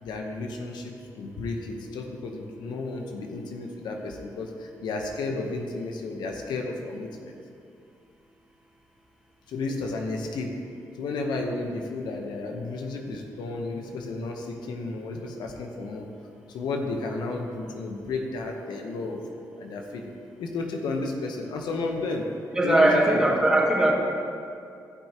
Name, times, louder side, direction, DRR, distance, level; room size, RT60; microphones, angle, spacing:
voice 1, 0.0-7.3 9.5-10.6 11.0-16.1 16.5-19.2 19.6-20.1 20.4-22.3 22.6-23.2, left 3 dB, 90° left, 2 dB, 0.9 m, -32 dB
voice 2, 22.6-23.9, right 1 dB, 10° right, -5 dB, 2.1 m, -20 dB
15.5 x 5.9 x 2.9 m, 2.5 s
cardioid pair, 85°, 7 cm